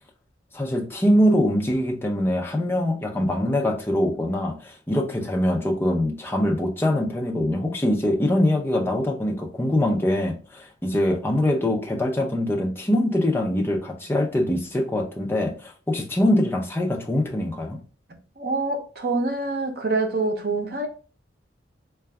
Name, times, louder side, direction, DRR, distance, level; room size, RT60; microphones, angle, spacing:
voice 1, 0.5-17.8, left 1 dB, 10° left, 0.6 m, -23 dB
voice 2, 18.4-20.9, right 3 dB, 55° right, 0.7 m, -25 dB
3.8 x 2.3 x 3.3 m
head